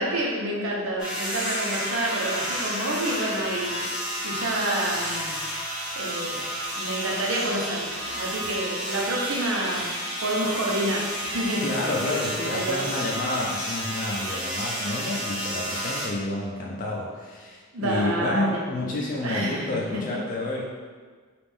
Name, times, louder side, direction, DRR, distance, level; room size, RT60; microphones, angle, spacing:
voice 1, 0.0-3.9 4.2-5.4 6.0-9.9 10.2-11.7 12.1-12.9 17.7-18.6 19.2-20.2, right 1 dB, 90° right, -2 dB, 0.9 m, -28 dB
sound 1, 1.0-16.1, equal, 5° right, 1.3 m, -31 dB
voice 2, 11.6-20.6, left 2 dB, 40° left, -3 dB, 0.5 m, -29 dB
5.0 x 2.5 x 3.5 m, 1.5 s
head